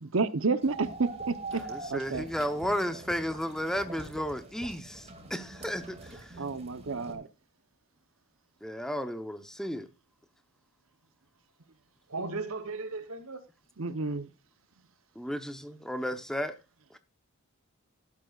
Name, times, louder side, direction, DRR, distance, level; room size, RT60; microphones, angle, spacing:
voice 1, 0.0-1.6 1.9-2.2 6.4-7.3 13.8-14.3, right 4 dB, 65° right, 0.9 m, -30 dB
sound 1, 0.6-7.1, right 2 dB, 30° right, 2.4 m, -44 dB
voice 2, 1.7-6.4 8.6-9.9 15.2-16.6, equal, ahead, 0.8 m, -33 dB
voice 3, 12.1-13.4, right 3 dB, 80° right, 2.4 m, -36 dB
15.0 x 12.0 x 2.4 m
head